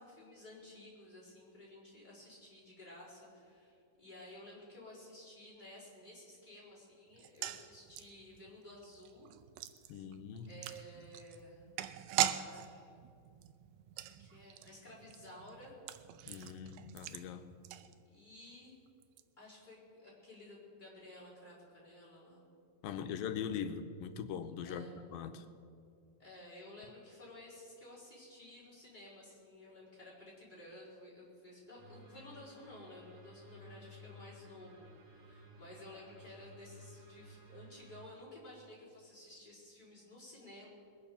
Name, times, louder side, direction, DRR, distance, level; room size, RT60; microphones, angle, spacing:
voice 1, 0.0-9.3 9.9-10.0 10.4-11.7 12.4-12.9 13.9-15.7 18.0-18.8 19.4-22.4 22.9-23.2 24.6-25.0 26.2-40.7, left 1 dB, 10° left, -7 dB, 4.7 m, -54 dB
sound 1, 7.1-18.4 18.6-18.7 19.0-19.2, right 12 dB, 80° right, 2.1 m, -41 dB
voice 2, 9.9-10.5 16.3-17.6 22.8-25.5, left 7 dB, 85° left, 9 dB, 2.4 m, -41 dB
sound 2, 31.8-38.1, equal, 40° right, 2.8 m, -56 dB
21.0 x 9.2 x 6.9 m, 2.5 s
omnidirectional pair, 4.1 m